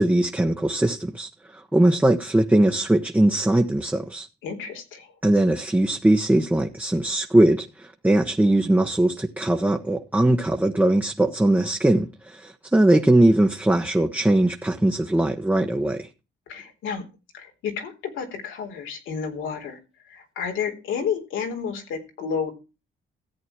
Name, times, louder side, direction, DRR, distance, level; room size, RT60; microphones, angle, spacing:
voice 1, 0.0-4.3 5.2-16.1, right 1 dB, 10° right, 1.2 m, -20 dB
voice 2, 4.4-5.1 16.5-17.0 17.3-19.8 20.1-22.5, left 6 dB, 85° left, 3.8 m, -31 dB
14.5 x 8.2 x 4.6 m
cardioid pair, 90°, 20 cm